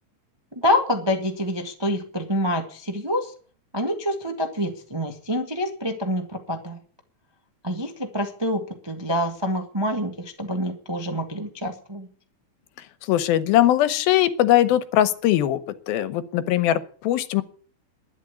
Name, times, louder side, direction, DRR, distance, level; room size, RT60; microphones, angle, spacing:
voice 1, 0.5-3.3 3.7-6.8 7.6-12.1, equal, 40° right, 3 dB, 0.3 m, -26 dB
voice 2, 13.1-15.6 15.9-17.4, left 13 dB, 85° left, 14 dB, 2.8 m, -20 dB
11.5 x 10.5 x 8.3 m, 0.43 s
omnidirectional pair, 4.2 m